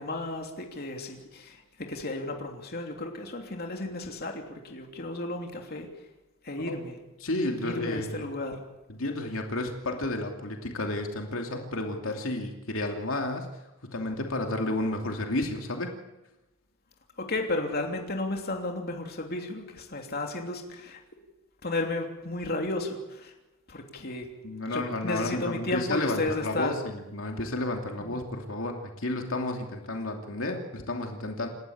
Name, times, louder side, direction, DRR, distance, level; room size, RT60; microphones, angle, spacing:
voice 1, 0.0-5.9 6.4-6.9 7.6-8.6 17.2-21.0 21.6-23.3 23.7-24.3 24.7-26.7 28.0-28.2, left 2 dB, 50° left, 2 dB, 3.1 m, -33 dB
voice 2, 7.2-8.3 8.9-13.5 13.8-15.9 24.4-31.5, left 2 dB, 75° left, 3 dB, 2.8 m, -31 dB
28.5 x 13.0 x 8.7 m, 1.0 s
head